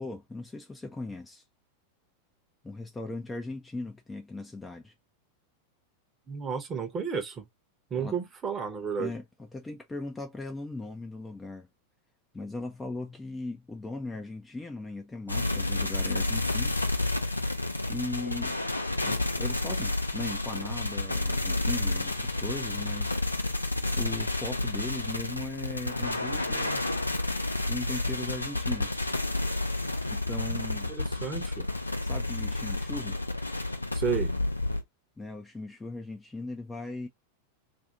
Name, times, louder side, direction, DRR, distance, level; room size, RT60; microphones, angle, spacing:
voice 1, 0.0-1.4 2.6-4.9 8.0-8.2 9.0-11.7 12.3-16.8 17.9-18.6 19.0-23.5 23.9-26.8 27.6-29.0 30.1-30.9 32.0-33.2 35.2-37.1, left 2 dB, 10° left, 0.5 m, -38 dB
voice 2, 6.3-7.4 7.9-9.1 30.9-31.7 33.9-34.3, right 6 dB, 25° right, 0.9 m, -32 dB
sound 1, 15.3-34.8, left 2 dB, 85° left, 0.5 m, -30 dB
2.5 x 2.4 x 2.7 m
figure-of-eight pair, 90°, 0 cm